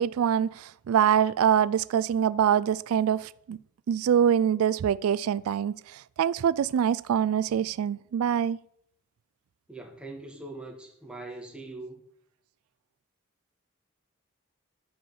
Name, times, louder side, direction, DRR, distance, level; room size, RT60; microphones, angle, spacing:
voice 1, 0.0-3.6 3.9-8.6, right 8 dB, 90° right, 0.3 m, -24 dB
voice 2, 9.7-12.0, right 2 dB, 5° right, 1.6 m, -42 dB
10.5 x 5.5 x 7.0 m
head